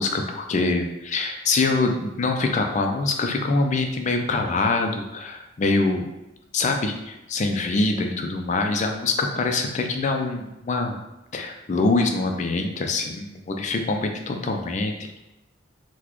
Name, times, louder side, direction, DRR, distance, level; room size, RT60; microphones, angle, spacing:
voice 1, 0.0-6.1 6.5-11.0 11.3-14.9, left 3 dB, 40° left, 4 dB, 0.4 m, -24 dB
3.9 x 2.2 x 3.0 m, 0.94 s
head